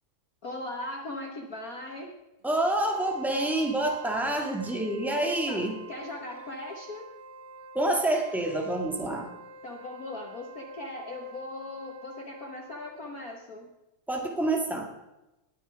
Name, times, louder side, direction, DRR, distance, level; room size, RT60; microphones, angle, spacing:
voice 1, 0.4-2.1 5.3-5.6 5.9-7.1 9.6-13.7, left 2 dB, 70° left, 2 dB, 0.8 m, -39 dB
voice 2, 2.4-5.8 7.7-9.3 14.1-14.9, right 1 dB, ahead, 2 dB, 0.6 m, -27 dB
Wind instrument woodwind instrument, 2.5-13.0, right 2 dB, 70° right, 2.2 m, -47 dB
19.0 x 7.1 x 5.1 m, 0.96 s
omnidirectional pair, 3.3 m